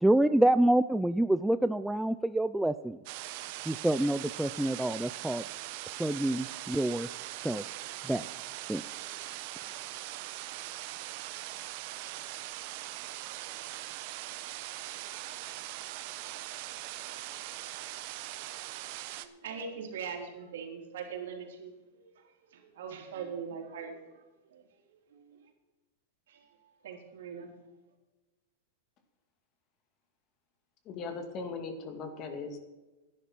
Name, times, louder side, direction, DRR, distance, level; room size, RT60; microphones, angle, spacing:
voice 1, 0.0-3.0 3.7-5.4 6.0-7.1 7.4-7.6 8.1-8.2 8.7-8.8, right 1 dB, 5° right, 11 dB, 0.3 m, -27 dB
sound 1, 3.1-19.3, right 15 dB, 50° right, 0.9 m, -41 dB
voice 2, 19.2-24.6 24.9-25.5 26.3-27.5, right 6 dB, 75° right, 2 dB, 3.5 m, -42 dB
voice 3, 30.9-32.6, left 4 dB, 35° left, 7 dB, 2.1 m, -39 dB
11.5 x 10.0 x 6.1 m, 1.1 s
hypercardioid pair, 135°, 0 cm